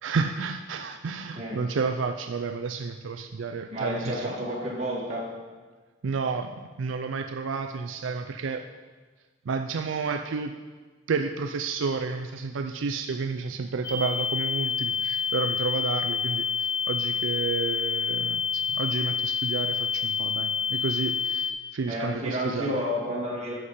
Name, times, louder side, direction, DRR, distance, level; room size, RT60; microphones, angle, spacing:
voice 1, 0.0-4.3 6.0-8.6 9.5-10.5 11.1-22.8, right 4 dB, 80° right, 6 dB, 0.4 m, -31 dB
voice 2, 3.7-5.3 21.9-23.6, equal, 35° right, -5 dB, 2.3 m, -30 dB
sound 1, 13.8-21.5, left 7 dB, 50° left, 1.7 m, -28 dB
12.5 x 6.7 x 4.2 m, 1.4 s
head